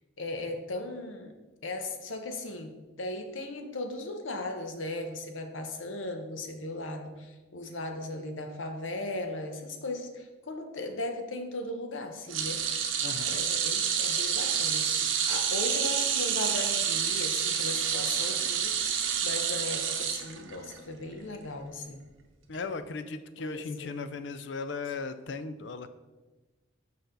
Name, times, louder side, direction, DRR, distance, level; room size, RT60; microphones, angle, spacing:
voice 1, 0.2-1.3 1.6-2.7 3.0-12.6 13.2-22.0 23.4-23.9 24.9-25.0, left 2 dB, 85° left, 5 dB, 0.9 m, -37 dB
sound 1, 12.3-20.8 21.1-21.4 22.5-22.6, right 7 dB, 85° right, 0.8 m, -28 dB
voice 2, 13.0-13.4 22.5-25.9, left 4 dB, 65° left, 11 dB, 0.4 m, -37 dB
6.8 x 5.5 x 3.9 m, 1.2 s
head